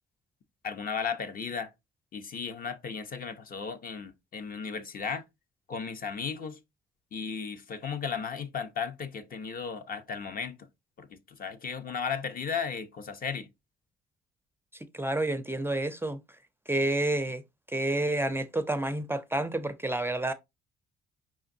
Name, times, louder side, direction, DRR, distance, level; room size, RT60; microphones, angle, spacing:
voice 1, 0.6-1.7 2.1-5.2 5.7-6.6 7.1-10.6 11.0-11.1 11.4-13.5, left 6 dB, 45° left, 0.6 m, -35 dB
voice 2, 14.9-16.2 16.7-17.4 17.7-20.3, right 1 dB, 10° right, 0.4 m, -29 dB
5.2 x 3.6 x 2.6 m
cardioid pair, 90°, 20 cm